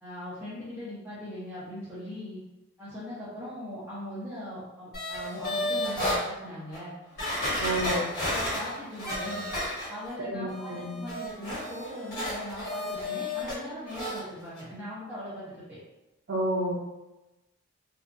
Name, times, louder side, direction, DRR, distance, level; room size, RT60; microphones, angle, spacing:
voice 1, 0.0-2.4 2.8-6.9 7.6-7.8 8.2-9.5 9.9-15.8, left 1 dB, 10° right, -12 dB, 0.6 m, -40 dB
sound 1, 4.9-6.2 6.7-6.8 7.2-10.1 10.5-13.6 13.9-14.2 14.6-14.7, left 1 dB, 45° left, 1.1 m, -32 dB
voice 2, 7.6-8.1 10.2-11.1 16.3-16.7, right 1 dB, 50° right, -6 dB, 0.5 m, -30 dB
2.7 x 2.2 x 2.5 m, 1.0 s
head